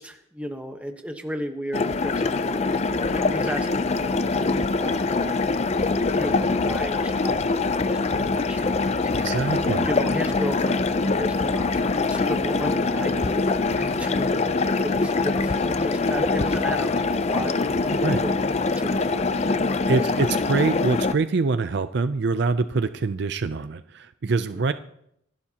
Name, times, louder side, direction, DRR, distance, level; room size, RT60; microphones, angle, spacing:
voice 1, 0.0-18.3 18.7-20.0 24.5-24.6, equal, 5° right, 5 dB, 1.1 m, -35 dB
sound 1, 1.7-21.1, left 3 dB, 30° left, 0.5 m, -24 dB
sound 2, 2.5-14.1, left 3 dB, 80° left, 0.8 m, -41 dB
voice 2, 9.2-9.9 18.0-18.2 19.9-24.7, right 4 dB, 55° right, 12 dB, 0.4 m, -24 dB
sound 3, 12.5-18.2, equal, 50° left, 2.2 m, -38 dB
26.5 x 12.0 x 2.9 m, 0.74 s
head